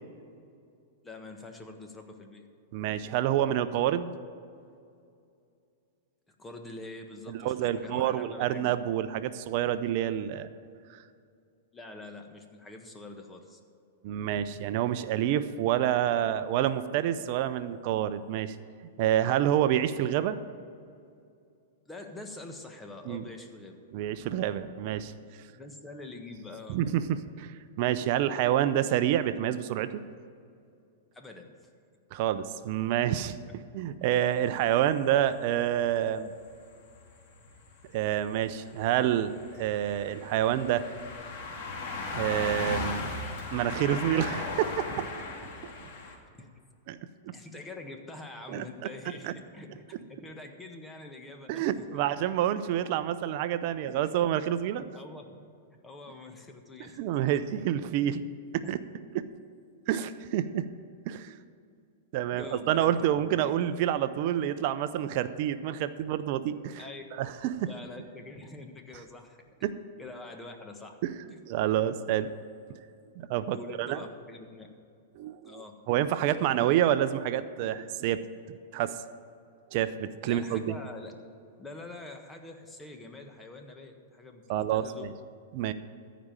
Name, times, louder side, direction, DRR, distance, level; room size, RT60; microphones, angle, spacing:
voice 1, 1.0-2.5 6.4-8.7 11.7-13.6 21.8-23.8 25.6-26.8 31.1-31.7 33.5-33.6 46.4-46.5 47.3-52.1 54.0-54.1 54.9-55.4 55.7-57.3 58.6-58.7 62.3-63.4 66.8-67.0 67.6-69.7 70.0-71.0 71.3-71.4 73.5-74.7 75.4-75.8 80.2-81.2 81.6-85.1, left 2 dB, 15° left, 4 dB, 1.4 m, -45 dB
voice 2, 2.7-4.1 7.3-10.5 14.0-18.6 19.0-20.4 23.1-23.2 23.9-25.1 26.7-30.0 32.1-33.4 33.7-36.3 37.9-40.8 42.1-43.1 43.5-45.1 46.9-47.0 48.5-48.6 49.2-49.3 51.5-54.8 57.0-58.2 58.5-58.8 59.1-59.3 59.9-60.7 61.1-61.4 62.1-66.8 67.1-67.7 69.6-69.8 71.0-71.2 71.5-72.3 73.2-74.0 75.2-78.2 78.7-79.0 79.7-80.6 84.5-85.1 85.5-85.7, right 11 dB, 50° right, 12 dB, 0.6 m, -28 dB
sound 1, 34.1-34.2 35.7-35.8 36.5-36.6 36.9-37.1 37.4-46.2, left 3 dB, 55° left, 2.1 m, -37 dB
14.0 x 5.1 x 8.9 m, 2.4 s
hypercardioid pair, 110°, 0 cm